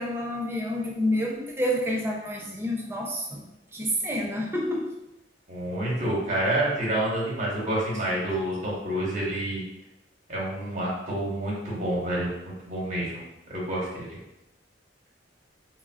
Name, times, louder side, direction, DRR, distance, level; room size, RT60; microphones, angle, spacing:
voice 1, 0.0-3.4 3.7-4.9, equal, 15° right, -2 dB, 0.4 m, -28 dB
voice 2, 5.5-9.6 10.3-13.2 13.5-14.2, right 1 dB, 45° right, -5 dB, 1.0 m, -28 dB
3.5 x 2.2 x 2.3 m, 0.89 s
head